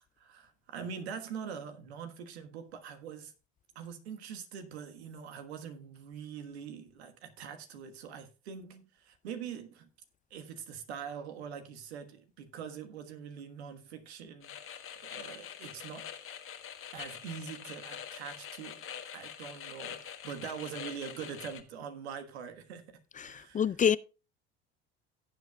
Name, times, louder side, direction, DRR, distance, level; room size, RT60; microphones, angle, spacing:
voice 1, 0.2-3.3 3.7-9.9 10.3-16.1 16.9-23.0 23.2-23.8, right 7 dB, 85° right, 1.5 m, -44 dB
sound 1, 14.4-21.6, left 9 dB, 45° left, 1.4 m, -45 dB
voice 2, 23.2-24.0, left 8 dB, 25° left, 0.4 m, -27 dB
17.0 x 7.8 x 2.3 m
hypercardioid pair, 70°, 31 cm